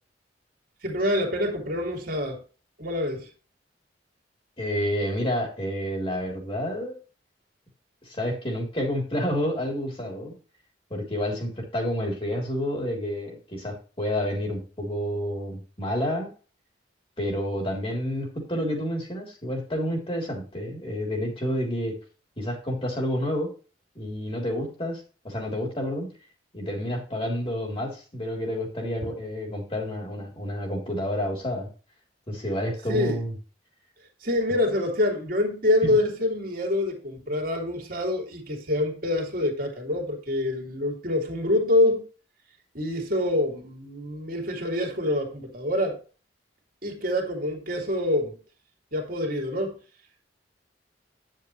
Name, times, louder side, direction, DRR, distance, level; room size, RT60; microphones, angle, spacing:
voice 1, 0.8-2.4 2.8-3.3 29.0-29.1 32.9-33.2 34.2-42.0 42.7-46.0 46.8-48.3 48.9-49.7, left 1 dB, 55° right, 2 dB, 2.7 m, -26 dB
voice 2, 4.6-7.0 8.0-10.3 10.9-16.3 17.2-22.0 22.4-23.5 23.9-26.1 26.5-31.7 32.3-33.3 35.8-36.0, equal, 30° left, 0 dB, 3.4 m, -29 dB
9.7 x 7.5 x 3.2 m, 0.36 s
head